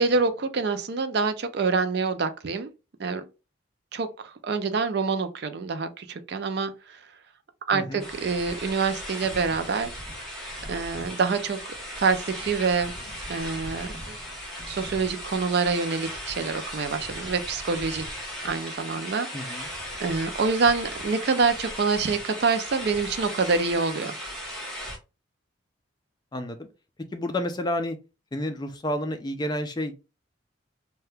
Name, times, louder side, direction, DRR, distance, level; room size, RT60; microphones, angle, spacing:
voice 1, 0.0-2.7 3.0-3.3 3.9-4.1 4.4-7.0 7.7-9.9 10.7-11.6 12.0-12.9 13.3-14.2 14.7-18.1 18.4-24.1, right 4 dB, 55° right, 0.4 m, -26 dB
voice 2, 7.7-8.0 19.3-19.7 26.3-26.7 27.1-28.0 28.3-29.9, left 1 dB, 20° left, 0.4 m, -30 dB
sound 1, 8.0-25.0, equal, ahead, 0.9 m, -37 dB
2.8 x 2.2 x 3.3 m
head